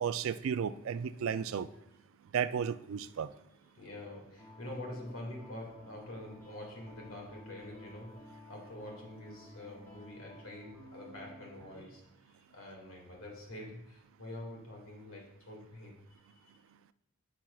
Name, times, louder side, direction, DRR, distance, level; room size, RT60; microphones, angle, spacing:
voice 1, 0.0-1.7 2.3-3.3, right 7 dB, 70° right, 14 dB, 0.3 m, -33 dB
voice 2, 3.6-16.0 16.3-16.5, left 1 dB, 75° left, 0 dB, 2.0 m, -46 dB
sound 1, 4.4-11.9, left 1 dB, 10° left, 1.3 m, -53 dB
9.8 x 6.0 x 2.3 m, 0.82 s
head